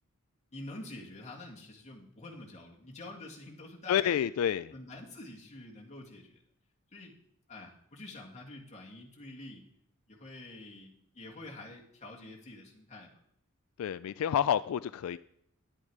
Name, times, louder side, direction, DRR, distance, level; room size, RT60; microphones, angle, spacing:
voice 1, 0.5-4.2 4.7-6.4 6.9-7.1 7.5-9.6 10.1-13.2, left 2 dB, 35° left, -1 dB, 2.0 m, -47 dB
voice 2, 3.9-4.7 13.8-15.2, left 9 dB, 80° left, 15 dB, 0.3 m, -29 dB
11.0 x 8.8 x 4.8 m, 0.72 s
head